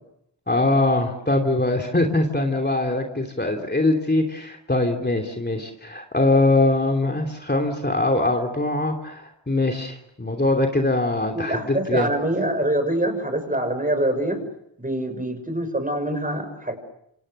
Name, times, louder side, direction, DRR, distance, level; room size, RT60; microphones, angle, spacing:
voice 1, 0.5-12.1, left 2 dB, 25° left, 2 dB, 2.9 m, -22 dB
voice 2, 11.3-14.4 14.8-16.8, right 1 dB, 20° right, 8 dB, 6.4 m, -25 dB
28.0 x 26.5 x 6.6 m, 0.77 s
wide cardioid pair, 80°, 43 cm